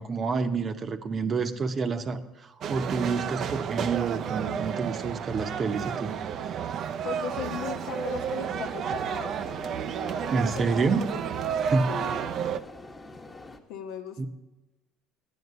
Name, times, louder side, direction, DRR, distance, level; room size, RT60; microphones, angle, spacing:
voice 1, 0.0-6.1 10.3-11.2 11.6-11.9 14.2-14.3, right 4 dB, 35° right, 9 dB, 0.8 m, -28 dB
sound 1, 2.6-12.6, right 8 dB, 55° right, 0.5 m, -31 dB
voice 2, 7.0-9.3 9.9-10.4 10.7-10.9 11.9-12.4 13.7-14.3, left 8 dB, 75° left, 6 dB, 1.0 m, -38 dB
sound 2, 7.5-13.6, left 2 dB, 20° left, 1.1 m, -45 dB
9.6 x 8.8 x 6.7 m, 1.1 s
supercardioid pair, 100°, 0 cm